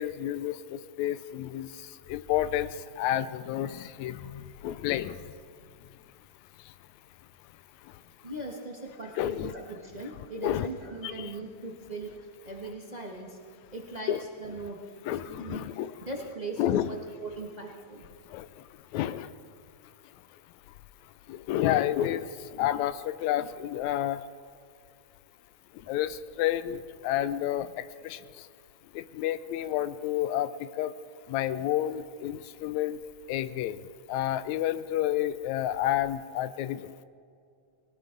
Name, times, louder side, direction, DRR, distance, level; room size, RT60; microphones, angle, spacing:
voice 1, 0.0-5.2 9.2-9.5 10.4-10.7 11.0-11.3 14.1-14.2 15.1-15.9 16.6-16.9 18.3-18.5 18.9-19.3 21.3-24.2 25.9-28.2 28.9-30.9 31.3-33.0 33.3-33.8 34.1-36.9, left 12 dB, 80° left, 15 dB, 1.8 m, -30 dB
voice 2, 8.2-12.1 12.4-13.4 13.7-14.1 14.4-14.8 15.4-15.7 16.0-18.1 23.9-24.1, right 2 dB, 55° right, 0 dB, 0.4 m, -39 dB
20.0 x 18.5 x 3.9 m, 2.4 s
omnidirectional pair, 3.4 m